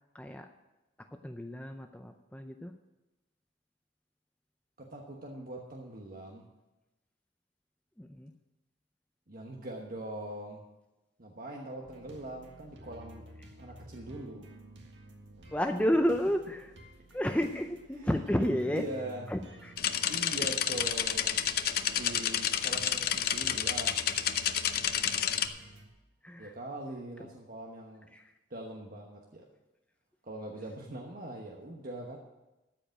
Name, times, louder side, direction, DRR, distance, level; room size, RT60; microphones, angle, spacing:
voice 1, 0.1-0.5 1.1-2.7 8.0-8.3 15.5-16.7 17.1-18.8 19.3-19.7 20.4-20.5 26.2-26.5 28.1-28.3, equal, 5° left, 6 dB, 0.5 m, -31 dB
voice 2, 4.8-6.5 9.3-10.6 11.2-13.3 13.6-14.5 17.9-19.3 20.1-21.4 21.9-24.1 26.4-28.1 28.5-29.5 30.2-32.2, right 1 dB, 50° right, 0 dB, 1.2 m, -42 dB
sound 1, 11.8-25.9, right 1 dB, 90° right, 1.8 m, -52 dB
sound 2, 19.8-25.5, left 9 dB, 55° left, 0.7 m, -30 dB
13.0 x 5.1 x 8.9 m, 1.0 s
head